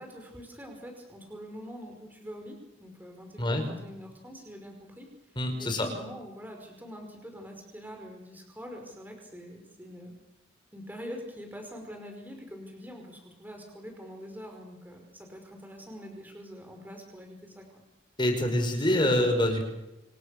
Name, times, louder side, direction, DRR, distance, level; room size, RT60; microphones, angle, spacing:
voice 1, 0.0-10.1 10.7-17.8, equal, 10° right, 3 dB, 5.5 m, -44 dB
voice 2, 5.4-5.9 18.2-19.6, left 1 dB, 25° left, 5 dB, 5.4 m, -25 dB
29.5 x 28.0 x 6.8 m, 0.97 s
head